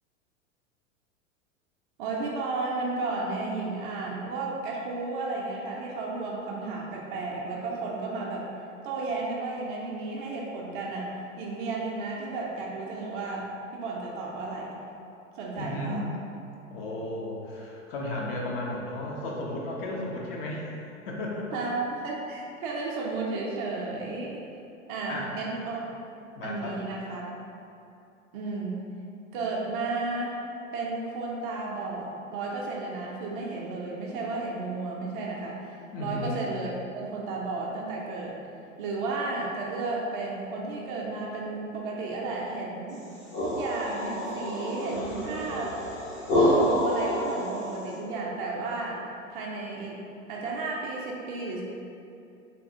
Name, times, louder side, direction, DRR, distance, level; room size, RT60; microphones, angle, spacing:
voice 1, 2.0-8.5 8.8-14.8 15.3-16.0 21.5-24.5 24.9-25.9 26.2-27.2 28.3-28.8 29.3-30.4 30.7-36.7 36.9-38.4 38.8-43.0 43.4-45.8 46.3-49.0 49.3-50.0 50.3-51.6, right 3 dB, 40° right, -3 dB, 0.5 m, -33 dB
voice 2, 15.6-16.0 16.7-20.8 21.1-21.6 25.1-25.3 26.4-26.8 35.9-36.4, left 1 dB, 45° left, -3 dB, 0.6 m, -34 dB
sound 1, 43.0-47.9, left 1 dB, 70° left, 1.3 m, -28 dB
3.2 x 2.3 x 2.6 m, 2.7 s
figure-of-eight pair, 90°, 40 cm